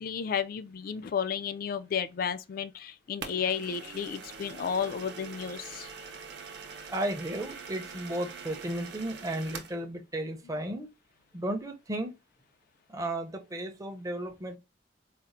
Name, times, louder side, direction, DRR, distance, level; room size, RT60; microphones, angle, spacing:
voice 1, 0.0-5.9, left 7 dB, 50° left, 0.3 m, -32 dB
sound 1, 3.2-9.8, right 5 dB, 60° right, 0.6 m, -44 dB
voice 2, 6.9-10.9 11.3-12.1 12.9-14.6, right 1 dB, 20° right, 0.5 m, -34 dB
4.1 x 2.0 x 2.5 m
head